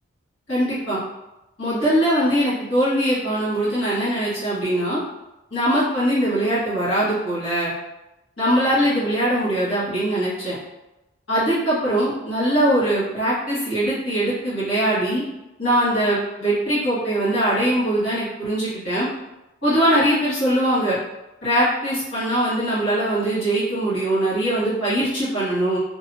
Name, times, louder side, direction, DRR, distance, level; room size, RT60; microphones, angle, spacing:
voice 1, 0.5-1.0 1.6-5.0 5.5-7.7 8.4-10.6 11.3-15.2 15.6-19.1 19.6-21.0 21.4-25.8, right 1 dB, 70° left, -10 dB, 1.4 m, -21 dB
2.7 x 2.0 x 2.6 m, 0.96 s
head